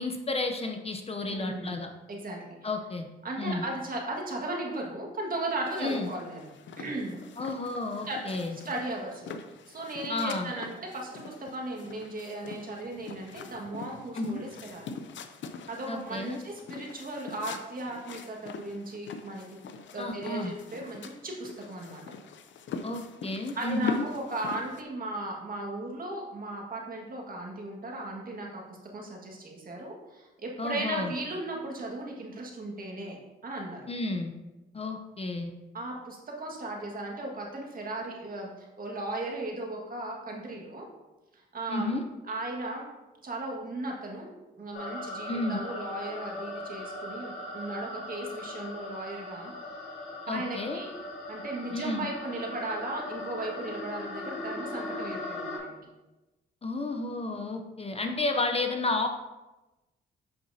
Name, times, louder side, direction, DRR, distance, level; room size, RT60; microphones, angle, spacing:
voice 1, 0.0-1.9 2.6-3.1 3.4-3.6 5.8-6.1 7.4-8.6 10.1-10.5 14.1-14.4 15.9-16.4 20.0-20.5 22.8-24.1 30.6-31.1 33.9-34.3 34.7-35.5 41.7-42.0 45.3-45.6 50.3-50.8 51.7-52.1 56.6-59.1, left 2 dB, 30° left, 5 dB, 0.6 m, -31 dB
voice 2, 1.3-1.8 2.1-2.7 3.2-6.5 6.8-7.2 8.1-8.2 8.5-9.4 9.7-14.8 15.7-19.4 19.9-22.0 23.5-33.2 33.4-33.9 35.7-40.9 41.3-41.9 42.3-42.9 43.2-49.5 50.3-50.9 51.3-55.8, right 2 dB, 45° right, -1 dB, 1.7 m, -36 dB
sound 1, 5.6-24.8, left 5 dB, 65° left, 0.6 m, -43 dB
sound 2, 44.7-55.6, left 1 dB, 85° left, 2.2 m, -39 dB
7.7 x 5.5 x 2.7 m, 1.1 s
cardioid pair, 80°, 20 cm